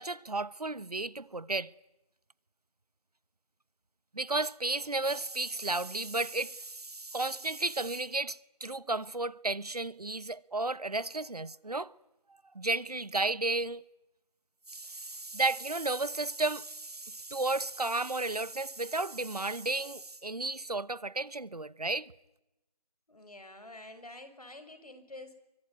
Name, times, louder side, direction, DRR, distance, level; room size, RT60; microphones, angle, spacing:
voice 1, 0.0-1.7 4.1-11.9 12.5-13.8 14.7-22.1, right 2 dB, 70° right, 1.1 m, -33 dB
voice 2, 23.1-25.3, left 2 dB, 65° left, 6.0 m, -48 dB
23.5 x 23.0 x 9.7 m
figure-of-eight pair, 170°, 21 cm